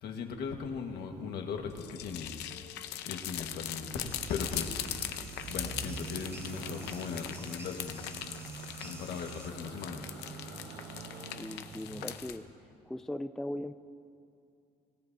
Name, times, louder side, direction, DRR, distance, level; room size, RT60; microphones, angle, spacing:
voice 1, 0.0-2.5 3.0-5.2 5.5-8.1 8.8-10.1, left 5 dB, 75° left, 4 dB, 1.5 m, -38 dB
sound 1, 1.7-12.4, left 12 dB, 90° left, 0.7 m, -41 dB
sound 2, 3.5-12.2, right 4 dB, 80° right, 1.3 m, -46 dB
sound 3, 4.0-9.5, right 2 dB, 15° right, 1.2 m, -51 dB
voice 2, 11.4-12.4 12.9-13.7, left 1 dB, ahead, 11 dB, 0.4 m, -38 dB
26.0 x 14.0 x 2.7 m, 2.5 s
cardioid pair, 110°, 17 cm